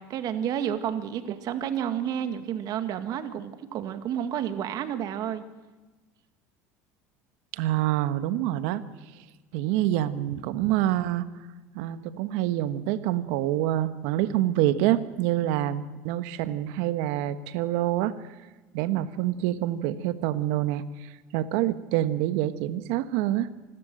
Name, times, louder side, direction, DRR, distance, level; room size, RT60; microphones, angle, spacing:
voice 1, 0.0-5.4, right 9 dB, 55° right, 9 dB, 2.1 m, -30 dB
voice 2, 7.5-8.8 9.5-11.3 11.7-18.1 18.7-23.5, right 13 dB, 75° right, 12 dB, 1.3 m, -26 dB
26.5 x 13.0 x 7.8 m, 1.2 s
supercardioid pair, 85°, 8 cm